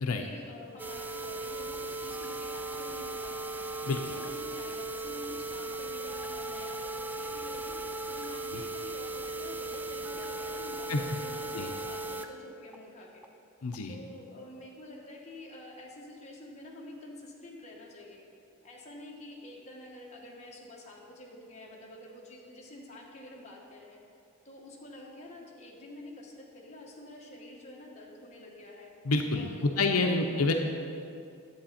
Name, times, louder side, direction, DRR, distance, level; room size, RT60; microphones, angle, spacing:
voice 1, 0.0-3.5 3.8-7.7 8.1-13.2 13.9-18.2 18.6-24.0 24.4-28.9 29.3-30.5, left 1 dB, 30° left, -3 dB, 1.5 m, -48 dB
sound 1, 0.8-12.3 12.7-12.8 13.2-13.3 13.7-13.8, right 2 dB, 10° right, 0.4 m, -37 dB
voice 2, 13.6-14.0 29.0-30.5, left 3 dB, 90° left, 4 dB, 0.7 m, -28 dB
10.5 x 7.9 x 4.3 m, 2.5 s
head